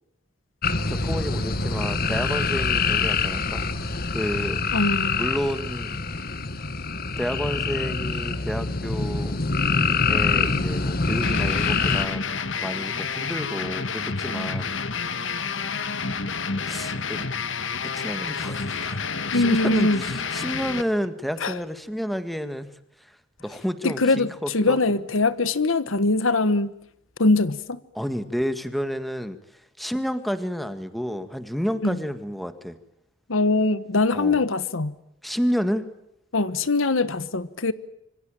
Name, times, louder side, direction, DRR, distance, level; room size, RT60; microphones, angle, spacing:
sound 1, 0.6-12.1, left 4 dB, 50° left, 1.6 m, -25 dB
voice 1, 0.9-3.7 4.1-4.6 5.1-6.0 7.2-9.4 10.1-12.3 12.6-14.8 16.7-17.3 17.9-19.0 19.3-22.7 23.1-23.2 23.4-24.9 27.9-29.4 29.8-32.8 34.1-34.4 35.2-35.9, equal, ahead, 1.7 m, -30 dB
voice 2, 4.7-5.3 19.3-20.0 21.4-21.6 23.8-26.7 27.2-27.8 31.8-32.0 33.3-35.0 36.3-37.7, left 2 dB, 85° left, 1.3 m, -22 dB
sound 2, 11.2-20.8, left 5 dB, 70° left, 1.7 m, -29 dB
26.5 x 25.0 x 9.0 m
head